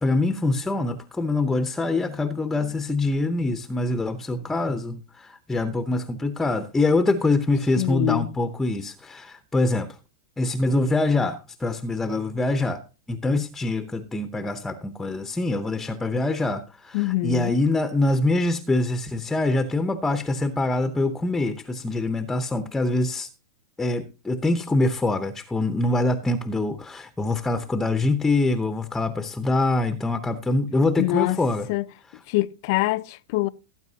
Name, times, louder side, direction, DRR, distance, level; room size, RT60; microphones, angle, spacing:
voice 1, 0.0-9.9 10.4-12.8 13.1-23.3 23.8-31.7, left 2 dB, 10° left, 0.8 m, -24 dB
voice 2, 7.8-8.3 16.9-17.6 31.0-31.4 31.7-31.8 32.3-33.5, left 19 dB, 55° left, 0.6 m, -24 dB
17.5 x 8.9 x 2.8 m
hypercardioid pair, 135°, 2 cm